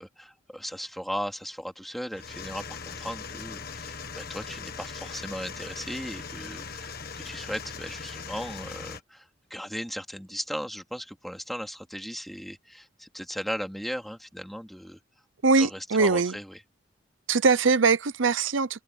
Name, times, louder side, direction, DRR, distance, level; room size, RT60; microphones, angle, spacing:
voice 1, 0.0-15.0 15.6-16.6, equal, ahead, 2.7 m, -37 dB
sound 1, 2.1-9.0, left 5 dB, 50° left, 1.6 m, -40 dB
voice 2, 15.4-16.4 17.3-18.8, right 4 dB, 80° right, 0.8 m, -22 dB
open air
head